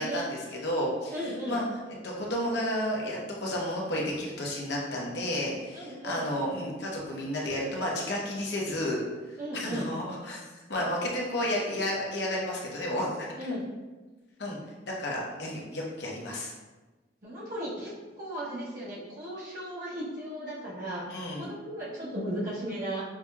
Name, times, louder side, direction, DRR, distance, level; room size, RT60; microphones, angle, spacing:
voice 1, 0.0-1.6 2.0-9.0 9.5-13.3 14.4-14.6 15.0-16.5 21.1-21.5, left 1 dB, 60° left, -3 dB, 0.9 m, -32 dB
voice 2, 1.1-1.6 5.7-6.3 9.4-9.9 13.4-13.6 17.2-21.0 21.4-23.0, right 1 dB, 45° right, -8 dB, 0.9 m, -36 dB
5.9 x 2.8 x 2.3 m, 1.2 s
head